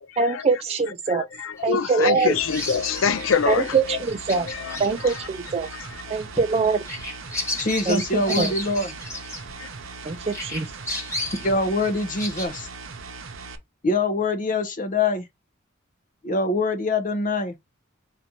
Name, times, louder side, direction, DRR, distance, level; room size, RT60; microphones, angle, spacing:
voice 1, 0.2-1.2 1.6-2.3 3.5-4.5 4.8-5.7 6.1-6.8 7.9-8.5 10.1-10.7, right 4 dB, 30° right, 0.4 m, -23 dB
voice 2, 1.1-4.0 4.3-5.2 5.7-5.9 9.6-9.7, left 6 dB, 75° left, 0.5 m, -26 dB
Bird vocalization bird call bird song, 1.6-10.0 10.3-12.5, left 2 dB, 15° left, 1.5 m, -34 dB
sound 1, 2.3-13.6, right 4 dB, 75° right, 0.8 m, -39 dB
voice 3, 7.6-8.9 11.4-12.7 13.8-15.3 16.2-17.6, left 2 dB, 40° left, 0.8 m, -24 dB
4.1 x 2.7 x 4.4 m
head